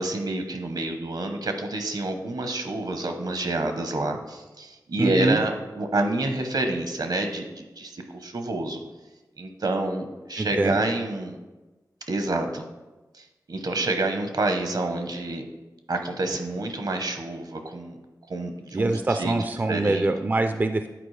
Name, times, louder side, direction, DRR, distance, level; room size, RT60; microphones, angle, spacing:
voice 1, 0.0-8.8 9.4-11.4 12.1-12.6 13.1-15.4 15.9-18.0 18.3-19.3 19.7-20.1, right 2 dB, 70° right, 6 dB, 0.8 m, -28 dB
voice 2, 5.0-5.4 10.4-10.8 18.7-20.9, right 2 dB, 25° right, 7 dB, 0.3 m, -24 dB
9.0 x 4.3 x 3.2 m, 1.1 s
wide cardioid pair, 75°, 7 cm